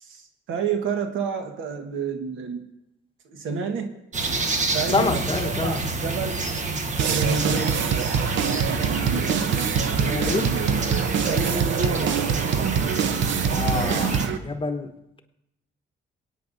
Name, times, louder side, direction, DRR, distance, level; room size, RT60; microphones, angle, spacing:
voice 1, 0.5-2.7 3.3-3.9 4.7-5.1 5.3-6.5 7.0-8.0 11.2-12.2, right 5 dB, 85° right, 5 dB, 1.4 m, -29 dB
sound 1, 4.1-14.3, right 3 dB, 35° right, 1.2 m, -28 dB
voice 2, 4.9-5.8 10.0-10.6 13.5-14.9, left 3 dB, 25° left, 6 dB, 1.2 m, -27 dB
sound 2, 7.0-14.4, right 7 dB, 70° right, 0.8 m, -24 dB
27.5 x 9.2 x 2.6 m, 0.88 s
cardioid pair, 90°, 20 cm